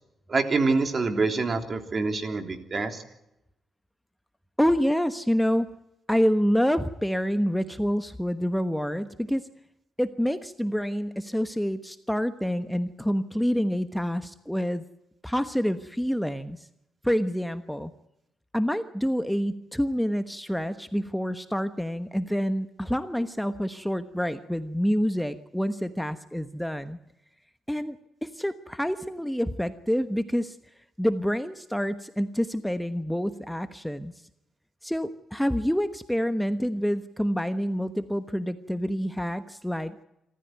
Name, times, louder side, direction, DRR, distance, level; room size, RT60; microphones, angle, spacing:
voice 1, 0.3-3.0, right 3 dB, 45° right, 6 dB, 3.3 m, -26 dB
voice 2, 4.6-5.7 6.1-9.4 10.0-14.8 15.2-16.7 17.0-17.9 18.5-27.0 27.7-28.0 28.2-30.6 31.0-34.1 34.8-40.0, equal, 5° left, 10 dB, 1.2 m, -27 dB
26.5 x 14.0 x 9.4 m, 0.89 s
cardioid pair, 65°, 0 cm